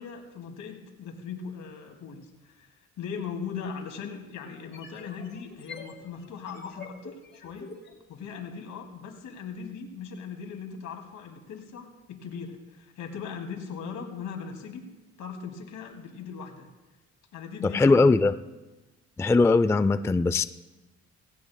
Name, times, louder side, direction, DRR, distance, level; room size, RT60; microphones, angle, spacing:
voice 1, 0.0-2.7 3.0-7.7 8.1-14.9 15.2-16.7 17.3-17.9, left 6 dB, 75° left, 4 dB, 2.4 m, -39 dB
sound 1, 4.5-8.5, left 4 dB, 40° left, 3.3 m, -45 dB
voice 2, 17.6-18.3 19.2-20.4, left 3 dB, 10° left, 14 dB, 0.3 m, -20 dB
18.5 x 16.5 x 2.2 m, 1.1 s
cardioid pair, 90°, 30 cm